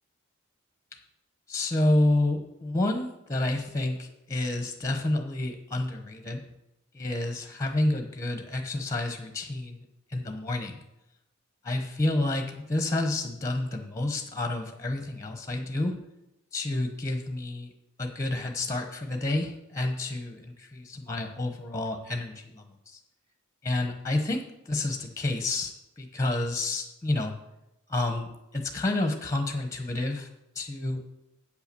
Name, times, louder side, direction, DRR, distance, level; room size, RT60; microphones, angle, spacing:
voice 1, 1.5-6.4 6.9-10.8 11.6-16.0 16.5-17.7 18.0-23.0 23.6-27.3 27.9-30.3 30.5-31.0, left 2 dB, 15° left, 5 dB, 1.0 m, -29 dB
8.5 x 5.7 x 6.8 m, 0.90 s
head